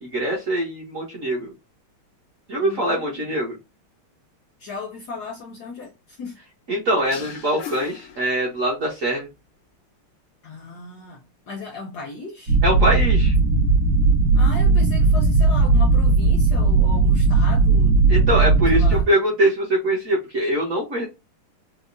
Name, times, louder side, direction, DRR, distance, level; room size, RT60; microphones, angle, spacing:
voice 1, 0.0-1.5 2.5-3.6 6.7-9.3 12.6-13.3 18.1-21.1, right 1 dB, 55° right, 1.0 m, -23 dB
voice 2, 2.6-3.2 4.6-6.4 10.4-11.2 11.5-12.6 14.3-18.0 18.7-19.1, left 3 dB, 70° left, 1.0 m, -36 dB
sound 1, 7.1-8.9, left 8 dB, 85° left, 1.6 m, -39 dB
sound 2, 12.5-19.0, right 3 dB, 75° right, 2.0 m, -17 dB
4.8 x 2.0 x 2.5 m
omnidirectional pair, 2.4 m